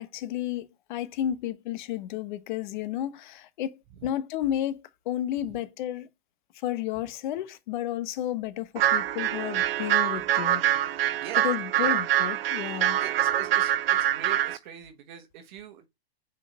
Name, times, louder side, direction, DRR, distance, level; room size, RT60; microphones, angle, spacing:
voice 1, 0.0-6.1 6.5-10.6 11.4-13.0, left 11 dB, 50° left, 1.1 m, -32 dB
sound 1, 8.8-14.6, right 12 dB, 65° right, 0.7 m, -25 dB
voice 2, 13.0-15.9, right 9 dB, 45° right, 1.3 m, -42 dB
5.9 x 4.6 x 5.2 m
hypercardioid pair, 125°, 32 cm